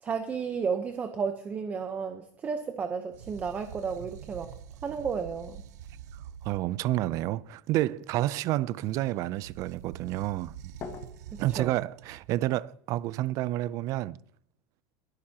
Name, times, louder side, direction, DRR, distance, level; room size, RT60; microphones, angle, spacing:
voice 1, 0.0-4.5 4.8-5.6 11.3-11.8, right 6 dB, 20° right, 0.9 m, -33 dB
sound 1, 3.1-7.3 9.3-12.4, right 10 dB, 80° right, 0.8 m, -46 dB
sound 2, 6.4-12.2, left 5 dB, 30° left, 1.7 m, -50 dB
voice 2, 6.4-10.5 11.4-14.2, right 15 dB, 35° right, 0.5 m, -29 dB
21.5 x 11.5 x 2.9 m
supercardioid pair, 160°, 9 cm